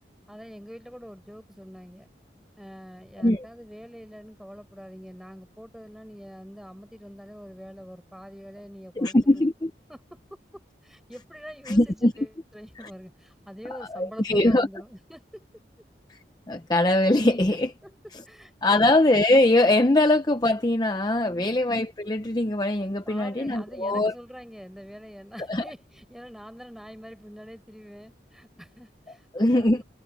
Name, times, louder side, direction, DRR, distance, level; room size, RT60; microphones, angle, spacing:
voice 1, 0.3-2.1 2.6-9.5 9.9-15.5 17.8-18.0 18.3-19.0 21.2-21.6 23.1-29.8, equal, ahead, 5.5 m, -45 dB
voice 2, 9.0-9.7 11.7-12.1 13.7-14.7 16.1-16.2 16.5-17.7 18.6-24.1 25.5-25.6 29.3-29.8, left 1 dB, 20° left, 0.7 m, -22 dB
head